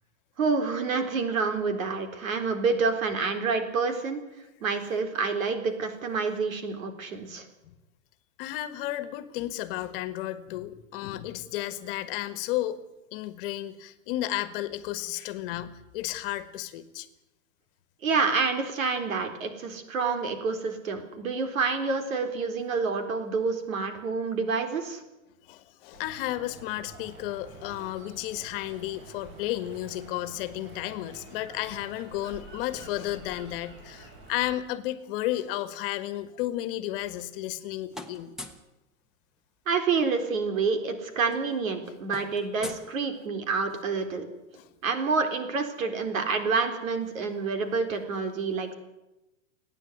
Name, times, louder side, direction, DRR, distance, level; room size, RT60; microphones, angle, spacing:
voice 1, 0.4-4.2 4.6-7.5 18.0-25.0 39.7-44.3 44.8-48.7, right 4 dB, 85° right, 7 dB, 4.0 m, -28 dB
voice 2, 8.4-12.8 13.1-17.1 25.4-38.3 42.6-42.8 44.5-44.7, left 14 dB, 45° left, 13 dB, 1.5 m, -33 dB
sound 1, 25.9-34.6, right 2 dB, 30° right, 6.4 m, -48 dB
sound 2, 36.9-37.6 37.9-38.7 40.1-40.2 40.4-40.7 40.9-43.6, left 2 dB, ahead, 1.2 m, -45 dB
29.5 x 10.0 x 9.4 m, 0.97 s
supercardioid pair, 155°, 39 cm